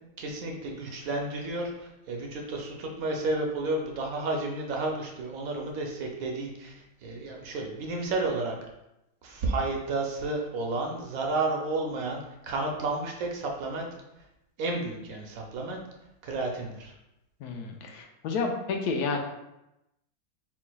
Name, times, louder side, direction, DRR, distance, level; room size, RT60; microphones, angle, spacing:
voice 1, 0.2-6.7 7.0-8.5 9.2-13.8 14.6-15.8 16.2-16.9, right 2 dB, 65° right, 1 dB, 1.1 m, -31 dB
voice 2, 17.4-19.2, left 4 dB, 80° left, 3 dB, 1.1 m, -30 dB
4.5 x 4.0 x 2.2 m, 0.89 s
omnidirectional pair, 1.7 m